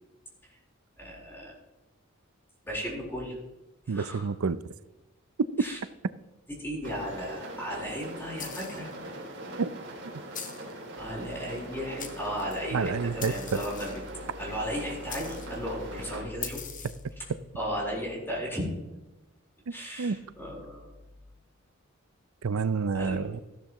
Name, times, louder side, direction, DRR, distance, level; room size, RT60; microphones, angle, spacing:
voice 1, 1.0-1.5 2.6-3.4 3.9-4.3 5.6-5.8 6.6-9.1 11.0-13.9 14.4-16.7 17.5-18.7 19.7-20.9 22.9-23.3, equal, 10° left, 4.1 m, -35 dB
voice 2, 3.9-4.6 5.4-5.5 9.6-9.7 12.7-13.6 19.7-20.2 22.4-23.4, right 5 dB, 80° right, 0.5 m, -29 dB
sound 1, 6.8-16.2, right 1 dB, 55° right, 2.8 m, -41 dB
sound 2, 8.4-8.9 10.3-10.7 11.6-11.7 12.0-12.6 13.2-14.1 15.1-15.6 16.4-17.1, left 8 dB, 40° left, 1.3 m, -41 dB
14.0 x 13.0 x 3.0 m
head